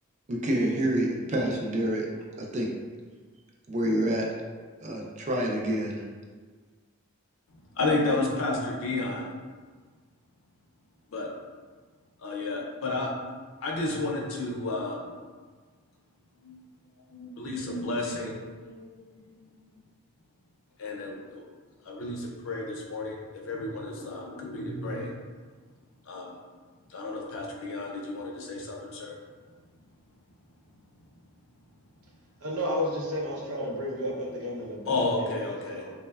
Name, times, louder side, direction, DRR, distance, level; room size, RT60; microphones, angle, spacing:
voice 1, 0.3-2.1 2.4-2.7 3.7-4.3 4.8-6.0, right 1 dB, 35° right, -1 dB, 0.4 m, -27 dB
voice 2, 7.8-9.3 11.1-11.3 12.2-13.1 13.6-15.1 16.4-16.6 17.1-19.3 20.8-21.4 21.8-23.2 23.4-25.1 26.1-26.3 26.9-29.1 34.9-35.8, left 2 dB, 65° left, -1 dB, 0.5 m, -32 dB
voice 3, 32.4-35.9, equal, 90° right, -4 dB, 0.6 m, -32 dB
3.1 x 2.1 x 2.3 m, 1.5 s
head